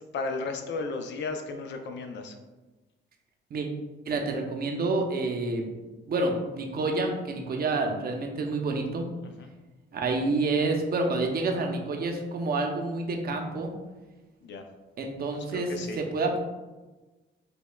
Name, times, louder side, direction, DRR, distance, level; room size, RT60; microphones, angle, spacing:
voice 1, 0.0-2.4 9.2-9.5 14.4-14.6 15.4-16.0, left 3 dB, 65° left, 5 dB, 0.5 m, -35 dB
voice 2, 4.1-5.7 6.1-9.0 9.9-13.7 15.0-16.4, right 3 dB, 50° right, 2 dB, 0.6 m, -28 dB
5.1 x 2.3 x 2.2 m, 1.2 s
cardioid pair, 90°, 20 cm